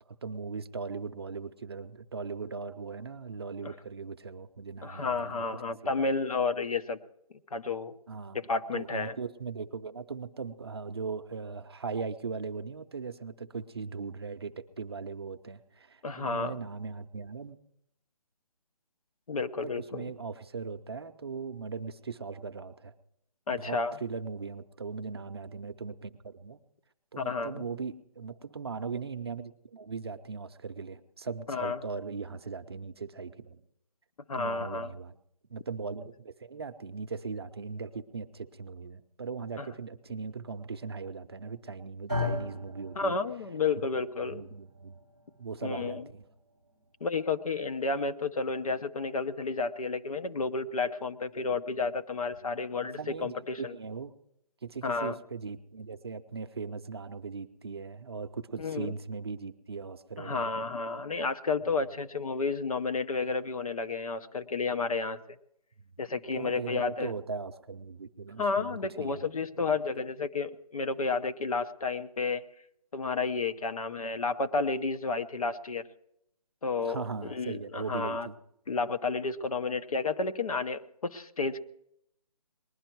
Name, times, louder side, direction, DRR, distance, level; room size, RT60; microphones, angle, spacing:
voice 1, 0.1-5.4 5.8-6.0 8.1-8.5 8.7-17.6 19.6-22.9 23.6-26.6 27.1-33.6 34.3-35.1 35.5-43.1 44.2-45.0 45.4-46.2 52.4-54.1 54.6-60.5 66.3-69.8 76.8-78.4, right 5 dB, 40° right, 8 dB, 0.6 m, -39 dB
voice 2, 4.8-7.0 7.5-7.9 8.3-9.2 16.0-16.6 19.3-20.1 23.5-24.0 27.2-27.6 31.5-31.8 34.3-34.9 39.6-39.7 43.0-44.4 45.6-46.0 47.0-53.7 54.8-55.2 58.6-58.9 60.2-65.2 66.0-67.1 68.4-72.4 72.9-75.8 76.6-78.3 78.7-81.6, left 4 dB, 65° left, 10 dB, 0.8 m, -31 dB
sound 1, 42.1-50.3, left 2 dB, 10° left, 0.6 m, -41 dB
20.0 x 11.5 x 4.6 m, 0.78 s
hypercardioid pair, 175°, 20 cm